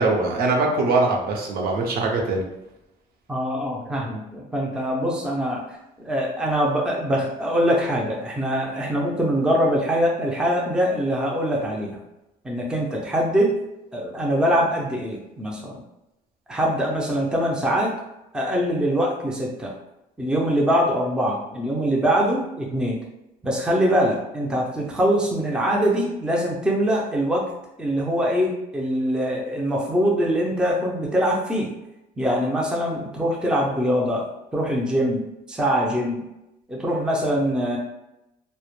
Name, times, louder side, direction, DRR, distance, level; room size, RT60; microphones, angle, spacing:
voice 1, 0.0-2.4, right 3 dB, 65° right, 0 dB, 0.6 m, -22 dB
voice 2, 3.3-5.6 6.0-11.9 12.4-13.6 13.9-15.8 16.5-17.9 18.3-19.7 20.2-23.0 23.4-27.5 27.8-31.7 32.2-34.3 34.5-36.2 36.7-37.8, equal, 5° right, -2 dB, 0.4 m, -23 dB
2.0 x 2.0 x 2.9 m, 0.90 s
cardioid pair, 110°, 17 cm